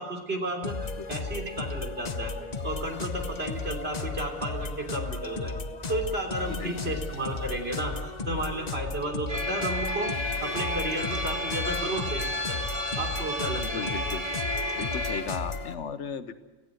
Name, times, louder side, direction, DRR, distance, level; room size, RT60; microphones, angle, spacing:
voice 1, 0.0-2.3 2.6-5.6 5.9-10.1 10.4-12.7 13.0-13.9, right 1 dB, 60° right, 2 dB, 3.6 m, -33 dB
sound 1, 0.6-15.7, left 3 dB, 40° left, 1.1 m, -35 dB
voice 2, 6.5-7.0 13.6-14.3 14.7-16.3, left 6 dB, 80° left, 12 dB, 1.3 m, -36 dB
sound 2, 9.3-15.2, left 1 dB, 30° right, 2.9 m, -32 dB
18.0 x 16.0 x 9.2 m, 1.2 s
omnidirectional pair, 1.2 m